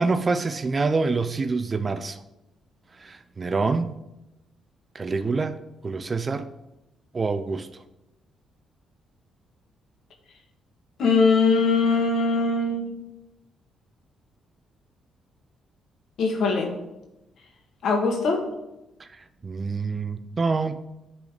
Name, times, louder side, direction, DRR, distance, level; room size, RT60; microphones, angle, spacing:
voice 1, 0.0-2.2 3.0-3.9 4.9-5.6 5.8-6.5 7.1-7.7 19.0-19.1 19.4-20.8, right 4 dB, 30° right, 0.5 m, -26 dB
voice 2, 11.0-13.0 16.2-16.7 17.8-18.4, left 4 dB, 70° left, 1.7 m, -21 dB
10.5 x 4.0 x 5.0 m
cardioid pair, 90°, 0 cm